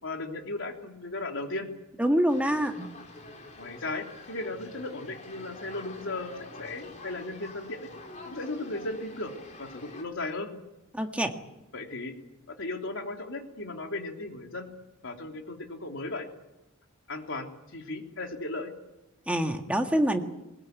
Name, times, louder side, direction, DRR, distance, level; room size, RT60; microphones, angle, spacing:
voice 1, 0.0-1.7 3.6-6.3 6.6-7.9 8.3-9.3 9.6-10.5 11.7-12.1 12.5-14.7 15.0-16.3 17.1-18.7, left 2 dB, 65° left, 3 dB, 3.2 m, -36 dB
voice 2, 2.0-2.9 10.9-11.3 19.3-20.2, equal, 5° right, 4 dB, 1.8 m, -25 dB
sound 1, 2.3-10.0, left 2 dB, 35° left, 3.9 m, -47 dB
21.0 x 20.5 x 9.5 m, 0.95 s
head